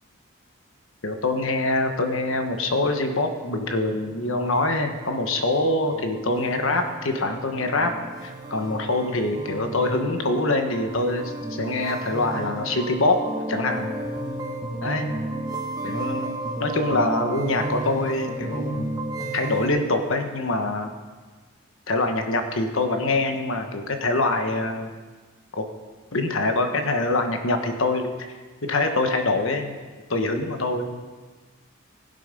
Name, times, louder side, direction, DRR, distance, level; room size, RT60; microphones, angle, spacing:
voice 1, 1.0-7.9 8.2-13.2 13.5-13.9 14.8-15.1 15.8-18.9 19.3-20.9 21.9-24.9 25.6-25.7 26.1-28.4 28.6-29.7 30.1-31.0, left 2 dB, 70° left, 5 dB, 1.2 m, -24 dB
sound 1, 2.9-19.7, right 1 dB, 15° right, 1.0 m, -33 dB
17.0 x 7.8 x 5.3 m, 1.4 s
head